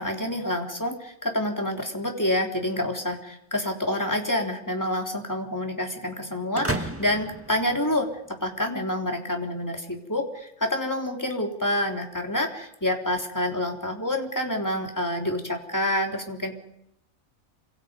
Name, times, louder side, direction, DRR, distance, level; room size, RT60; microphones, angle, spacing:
voice 1, 0.0-8.1 8.4-16.6, left 1 dB, 15° left, 2 dB, 3.8 m, -28 dB
sound 1, 6.5-8.5, right 1 dB, 10° right, 1.7 m, -33 dB
29.0 x 26.5 x 5.4 m, 0.77 s
omnidirectional pair, 1.4 m